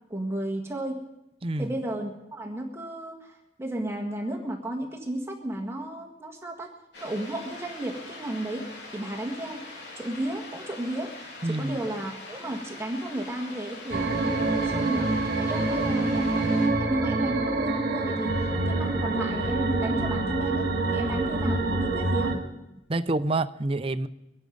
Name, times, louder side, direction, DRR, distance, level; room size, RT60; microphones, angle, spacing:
voice 1, 0.1-1.0 1.6-6.7 7.0-9.7 9.9-11.2 11.5-15.1 15.4-22.5, right 1 dB, 15° right, 0 dB, 1.6 m, -33 dB
voice 2, 1.4-1.7 11.4-11.8 22.9-24.1, right 2 dB, 30° right, 12 dB, 0.6 m, -27 dB
sound 1, 6.9-16.7, left 2 dB, 75° left, 3.4 m, -43 dB
sound 2, 13.9-22.4, right 2 dB, 60° right, 2.1 m, -26 dB
23.0 x 9.8 x 5.3 m, 0.93 s
head